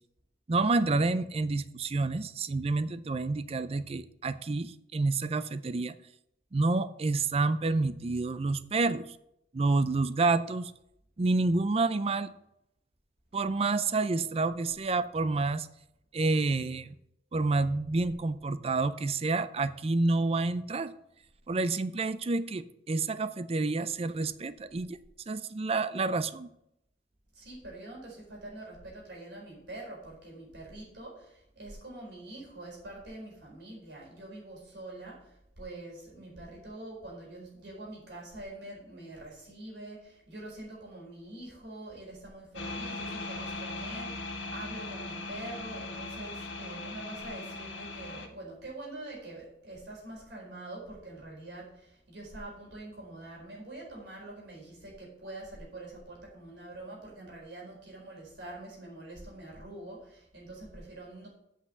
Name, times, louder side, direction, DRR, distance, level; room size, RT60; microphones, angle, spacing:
voice 1, 0.5-6.0 6.5-9.1 9.5-10.7 11.2-12.3 13.3-15.7 16.1-16.9 17.3-20.9 21.5-25.0 25.3-26.5, right 3 dB, 35° right, 13 dB, 0.4 m, -29 dB
voice 2, 27.3-61.3, right 2 dB, 65° right, -3 dB, 4.6 m, -45 dB
sound 1, 42.5-48.3, left 2 dB, 90° left, 1.5 m, -39 dB
8.4 x 5.8 x 7.7 m, 0.78 s
head